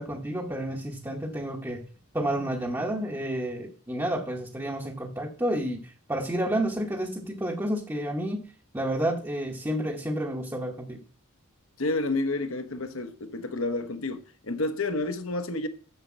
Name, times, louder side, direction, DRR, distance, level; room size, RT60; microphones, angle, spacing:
voice 1, 0.0-1.8 2.1-8.4 8.7-11.0, right 1 dB, 15° right, 0.9 m, -30 dB
voice 2, 11.8-15.7, left 2 dB, 70° left, 1.1 m, -30 dB
7.3 x 6.6 x 7.3 m
head